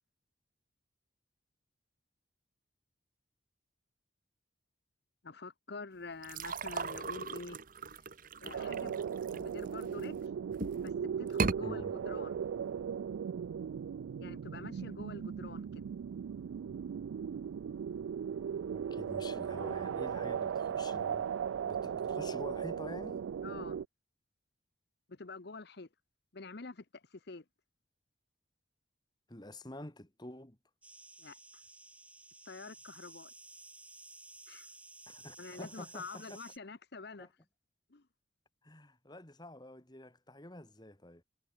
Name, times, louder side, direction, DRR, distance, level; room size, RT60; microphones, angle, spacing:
voice 1, 5.2-7.6 8.4-10.2 10.8-10.9 11.2-12.4 14.2-15.9 23.4-23.8 25.1-25.9 26.3-26.8 27.3-27.4 31.2-31.4 32.5-33.3 34.5-34.7 35.4-37.3 37.9-38.0, left 3 dB, 55° left, 0.9 m, -47 dB
sound 1, 6.2-10.0 10.5-10.9 11.3-11.6, right 3 dB, 45° right, 1.0 m, -37 dB
sound 2, 8.5-23.9, right 7 dB, 85° right, 0.3 m, -37 dB
voice 2, 11.6-11.9 18.7-21.3 21.6-23.3 29.3-30.6 35.1-36.4 37.2-37.3 38.6-41.2, left 1 dB, 20° left, 2.4 m, -48 dB
sound 3, 30.8-36.6, right 2 dB, 5° right, 1.2 m, -54 dB
head